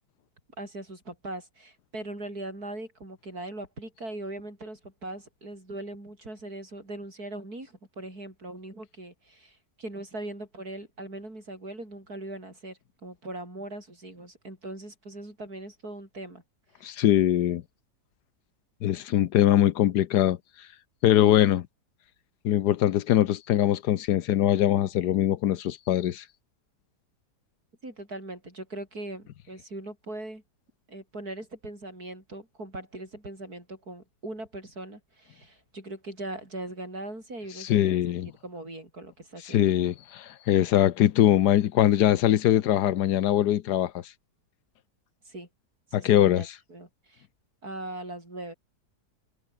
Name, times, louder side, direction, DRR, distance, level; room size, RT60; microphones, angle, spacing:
voice 1, 0.6-16.4 16.8-16.9 27.8-30.4 30.9-38.1 38.4-39.6 45.3-45.5 45.9-47.3 47.6-48.5, right 2 dB, 65° right, 8.5 m, -40 dB
voice 2, 16.8-17.6 18.8-20.4 21.0-21.6 22.4-26.2 37.6-38.3 39.4-43.9 45.9-46.4, left 12 dB, 80° left, 1.4 m, -22 dB
omnidirectional pair, 1.7 m